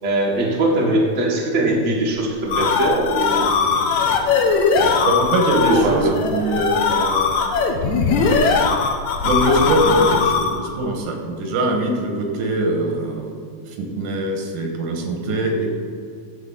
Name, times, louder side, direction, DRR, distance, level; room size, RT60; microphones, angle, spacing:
voice 1, 0.0-3.9 4.4-4.5 4.8-4.9 5.6-6.2 7.8-7.9 15.2-15.5, right 2 dB, 30° right, -3 dB, 1.5 m, -21 dB
sound 1, 2.2-10.7, left 5 dB, 70° left, 2.1 m, -20 dB
voice 2, 5.1-7.4 9.2-13.3 13.8-15.8, right 1 dB, 80° right, 3 dB, 2.8 m, -22 dB
11.5 x 4.4 x 7.5 m, 2.2 s
omnidirectional pair, 3.6 m